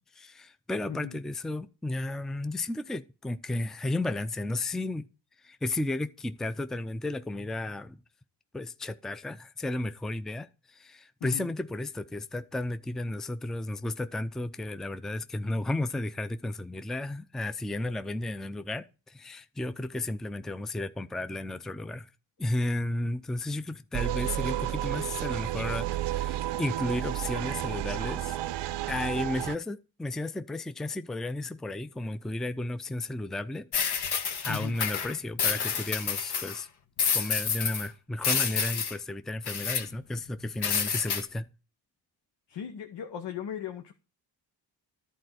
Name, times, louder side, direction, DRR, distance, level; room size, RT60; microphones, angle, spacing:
voice 1, 0.0-5.1 5.4-8.0 8.5-22.1 22.4-28.4 28.9-33.7 34.4-36.7 37.1-41.5, left 2 dB, ahead, 0.5 m, -33 dB
sound 1, 23.9-29.6, right 13 dB, 75° right, 0.6 m, -31 dB
sound 2, 33.7-36.6 37.0-37.9 38.2-38.9 39.5-39.8 40.6-41.2, left 6 dB, 65° left, 1.4 m, -29 dB
voice 2, 42.5-43.9, left 9 dB, 85° left, 1.1 m, -37 dB
11.5 x 4.3 x 7.9 m
cardioid pair, 80°, 42 cm